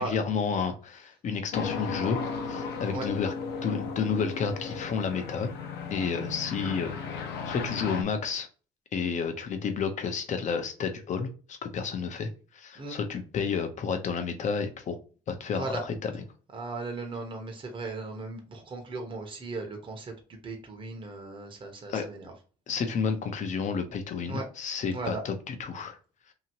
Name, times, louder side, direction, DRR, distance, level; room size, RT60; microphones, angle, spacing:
voice 1, 0.0-2.2 2.5-3.3 3.6-5.5 5.9-8.5 8.9-15.0 15.3-16.2 21.9-22.1 22.7-26.0, left 5 dB, 45° left, 7 dB, 0.7 m, -31 dB
sound 1, 1.5-8.0, left 5 dB, 80° left, 0.8 m, -35 dB
voice 2, 16.5-20.1 20.4-22.3 24.3-24.4 24.9-25.2, right 3 dB, 30° right, 2 dB, 0.9 m, -37 dB
2.9 x 2.7 x 2.8 m, 0.37 s
cardioid pair, 110°, 17 cm